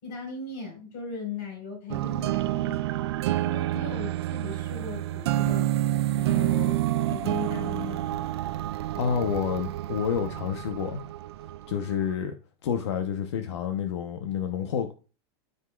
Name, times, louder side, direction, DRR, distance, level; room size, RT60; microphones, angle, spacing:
voice 1, 0.0-2.9 3.4-5.7 6.2-8.2, left 4 dB, 45° left, 4.9 m, -38 dB
sound 1, 1.9-12.1, right 14 dB, 70° right, 0.5 m, -28 dB
voice 2, 8.9-11.0 11.7-12.4 12.6-14.9, left 7 dB, 80° left, 1.0 m, -29 dB
13.5 x 5.4 x 2.4 m
supercardioid pair, 180°, 14 cm